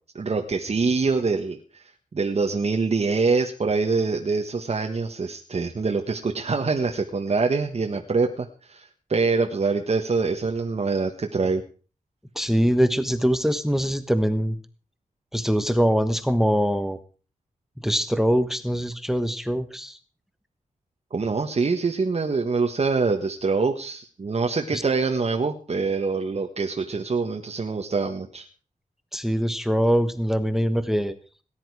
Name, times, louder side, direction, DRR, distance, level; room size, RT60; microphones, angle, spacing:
voice 1, 0.1-11.6 21.1-28.5, right 4 dB, 50° right, 3 dB, 1.4 m, -25 dB
voice 2, 12.3-14.6 15.3-17.0 17.8-20.0 24.7-24.8 29.1-31.1, equal, 5° right, 11 dB, 1.2 m, -23 dB
18.5 x 10.5 x 4.8 m, 0.38 s
wide cardioid pair, 100°, 14 cm